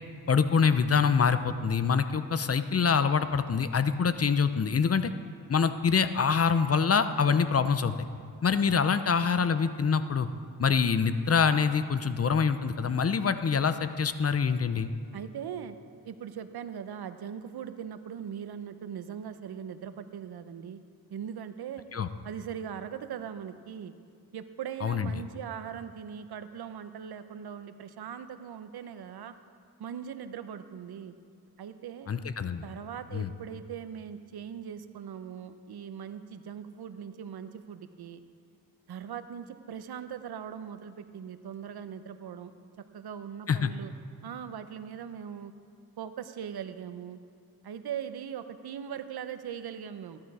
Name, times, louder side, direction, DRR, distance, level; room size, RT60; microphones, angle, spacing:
voice 1, 0.3-5.1 5.5-7.9 8.4-10.3 10.6-14.9 21.9-22.1 24.8-25.1 32.1-32.6 33.1-33.3 43.5-43.7, left 6 dB, 40° left, 11 dB, 0.7 m, -25 dB
voice 2, 15.1-15.8 16.0-20.8 21.1-21.8 22.2-23.9 24.3-29.3 29.8-31.1 31.6-32.1 32.6-38.2 38.9-42.5 42.9-43.9 44.2-45.5 46.0-47.2 47.6-50.2, right 8 dB, 80° right, 10 dB, 0.8 m, -40 dB
15.0 x 10.5 x 4.8 m, 2.3 s
cardioid pair, 75°, 38 cm